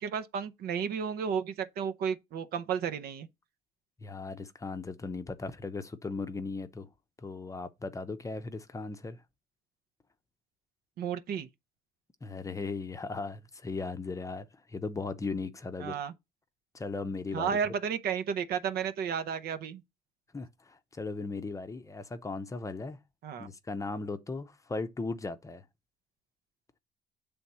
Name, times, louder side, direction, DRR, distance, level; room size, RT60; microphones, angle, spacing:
voice 1, 0.0-3.3 11.0-11.5 15.8-16.1 17.3-19.8 23.2-23.5, right 7 dB, 65° right, 0.8 m, -32 dB
voice 2, 4.0-6.9 7.2-9.2 12.2-16.0 16.7-17.7 20.3-23.0 23.4-25.6, left 3 dB, 20° left, 0.7 m, -37 dB
8.0 x 3.5 x 4.1 m
cardioid pair, 110°, 17 cm